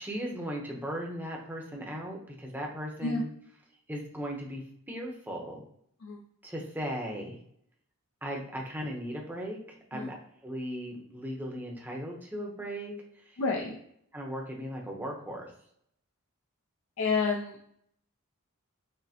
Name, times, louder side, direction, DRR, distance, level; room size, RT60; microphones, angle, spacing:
voice 1, 0.0-3.3 3.9-4.6 4.9-5.6 6.4-7.4 8.2-9.6 9.9-10.2 10.4-13.4 14.1-15.5, equal, 10° right, -1 dB, 0.7 m, -37 dB
voice 2, 13.4-13.8 17.0-17.6, left 4 dB, 65° left, 0 dB, 0.5 m, -29 dB
6.1 x 2.1 x 2.7 m, 0.70 s
head